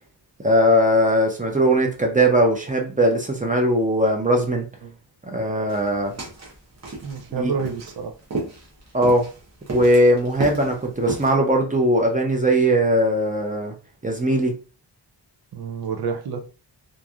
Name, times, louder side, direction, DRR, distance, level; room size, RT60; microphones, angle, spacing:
voice 1, 0.4-4.7 5.3-6.1 7.3-7.5 8.9-9.3 9.7-13.7 14.0-14.5, equal, 20° right, 2 dB, 0.5 m, -19 dB
sound 1, 5.7-11.3, right 3 dB, 40° right, 0.9 m, -33 dB
voice 2, 7.0-8.1 15.5-16.4, right 5 dB, 65° right, 5 dB, 0.5 m, -28 dB
3.0 x 2.5 x 2.3 m, 0.35 s
wide cardioid pair, 155°, 42 cm